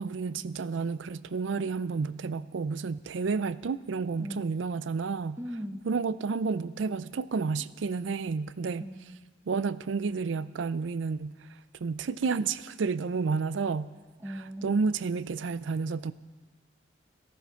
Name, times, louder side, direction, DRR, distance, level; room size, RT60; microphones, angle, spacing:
voice 1, 0.0-5.4 5.9-8.8 9.5-11.4 11.8-13.9 14.6-16.1, right 4 dB, 80° right, 17 dB, 0.4 m, -30 dB
voice 2, 4.2-4.5 5.4-5.9 8.8-9.4 14.2-14.9, equal, 15° right, 6 dB, 1.0 m, -39 dB
14.5 x 12.0 x 5.7 m, 1.4 s
head